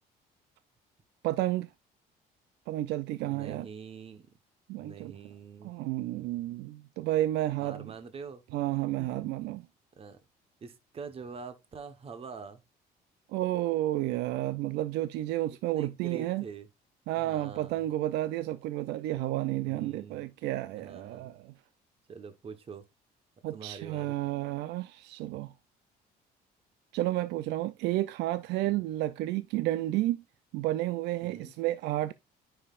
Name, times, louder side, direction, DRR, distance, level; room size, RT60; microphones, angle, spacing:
voice 1, 1.2-1.7 2.7-3.7 4.7-5.1 5.6-7.9 8.5-9.6 13.3-16.4 17.1-21.5 23.4-25.5 26.9-30.2 30.5-32.1, right 15 dB, 85° right, 0.4 m, -31 dB
voice 2, 3.2-4.3 4.8-5.7 7.6-8.4 9.0-9.1 10.0-10.2 10.6-12.6 15.8-16.7 17.1-17.9 19.6-20.3 20.7-21.3 22.1-22.8 23.5-24.2 28.6-28.8 31.2-31.5, right 5 dB, 35° right, 1.1 m, -45 dB
9.7 x 5.6 x 2.4 m
cardioid pair, 110°, 17 cm